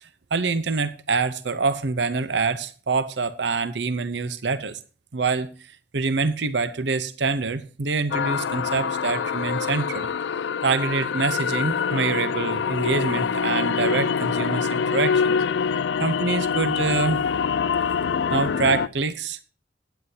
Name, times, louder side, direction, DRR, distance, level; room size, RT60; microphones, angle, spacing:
voice 1, 0.0-4.8 5.1-5.5 5.9-10.1 10.6-15.4 16.0-17.2 18.3-19.4, right 4 dB, 75° right, 0.7 m, -25 dB
sound 1, 8.1-18.9, left 6 dB, 80° left, 0.4 m, -25 dB
16.0 x 9.7 x 2.8 m
head